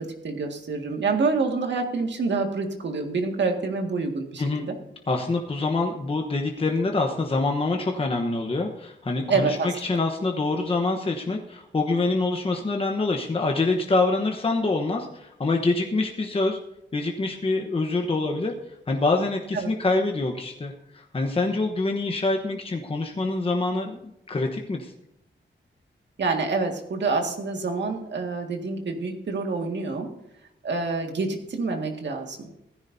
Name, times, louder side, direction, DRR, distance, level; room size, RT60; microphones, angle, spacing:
voice 1, 0.0-4.7 9.3-10.0 19.5-19.7 26.2-30.1 30.6-32.5, right 4 dB, 65° right, 3 dB, 2.0 m, -27 dB
voice 2, 5.1-16.6 16.9-18.5 18.9-24.9, left 3 dB, 30° left, 2 dB, 1.1 m, -25 dB
16.5 x 14.5 x 2.7 m, 0.84 s
wide cardioid pair, 165°, 20 cm